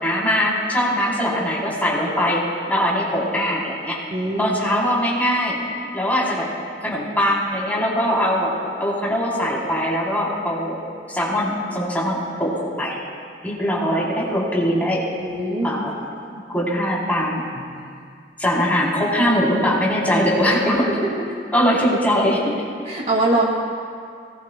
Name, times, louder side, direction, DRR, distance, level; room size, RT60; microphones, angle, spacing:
voice 1, 0.0-4.0 4.4-5.6 5.9-6.5 6.8-8.5 8.8-10.8 11.1-13.0 13.4-15.0 15.6-16.0 16.3-17.4 18.4-20.9 21.5-22.5, equal, 10° left, -6 dB, 3.4 m, -21 dB
voice 2, 4.1-4.6 15.2-15.7 17.6-17.7 20.5-20.6 20.9-21.3 22.9-23.4, right 2 dB, 35° right, -2 dB, 2.0 m, -23 dB
23.0 x 18.5 x 2.2 m, 2.2 s
head